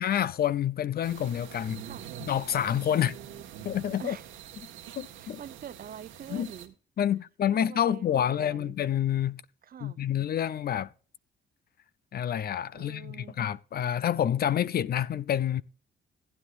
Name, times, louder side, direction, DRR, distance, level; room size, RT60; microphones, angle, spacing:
voice 1, 0.0-1.8 2.3-3.2 3.6-4.2 5.0-5.4 6.3-6.5 7.0-9.4 9.8-10.9 12.1-15.6, left 10 dB, 50° left, 0.5 m, -28 dB
sound 1, 1.0-6.7, right 10 dB, 90° right, 1.4 m, -45 dB
voice 2, 1.8-2.1 2.9-3.5 4.0-4.3 5.1-6.7 7.5-8.8 9.6-10.0 12.7-13.4, right 9 dB, 45° right, 0.6 m, -45 dB
15.0 x 9.7 x 2.5 m
cardioid pair, 90°, 20 cm